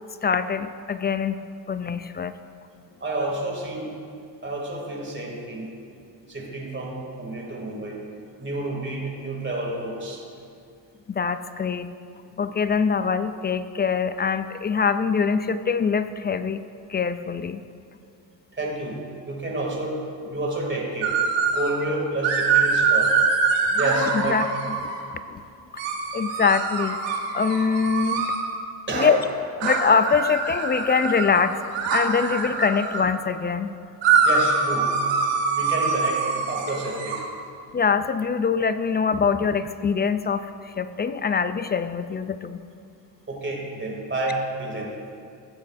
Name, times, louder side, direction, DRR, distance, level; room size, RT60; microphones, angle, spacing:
voice 1, 0.2-2.4 11.1-11.9 12.4-16.6 16.9-17.6 24.1-24.5 25.3-25.4 26.1-27.0 27.3-28.3 28.9-29.2 29.6-31.6 31.9-33.7 37.7-42.6, left 5 dB, 25° left, 12 dB, 0.4 m, -23 dB
voice 2, 3.0-3.9 4.4-5.7 6.3-8.0 8.4-10.2 18.5-19.0 19.3-19.9 20.3-21.1 21.5-23.1 23.8-24.4 28.9-29.2 34.2-34.9 35.5-37.2 43.0-44.9, right 2 dB, 25° right, -2 dB, 2.6 m, -29 dB
sound 1, 21.0-21.7 22.2-25.0 25.8-28.4 29.6-33.0 34.0-37.2, right 5 dB, 80° right, 1.4 m, -24 dB
15.0 x 8.3 x 2.6 m, 2.4 s
supercardioid pair, 65°, 43 cm